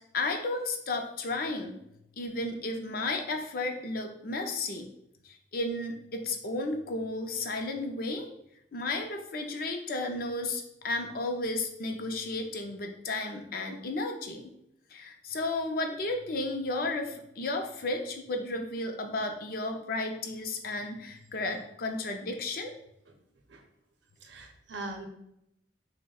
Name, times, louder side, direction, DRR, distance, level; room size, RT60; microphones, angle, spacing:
voice 1, 0.1-1.8 2.2-4.8 5.2-8.3 8.7-14.5 14.9-22.7, left 2 dB, 50° left, 4 dB, 0.5 m, -33 dB
voice 2, 24.2-25.1, right 2 dB, 80° right, 3 dB, 0.7 m, -41 dB
6.2 x 2.1 x 2.3 m, 0.80 s
head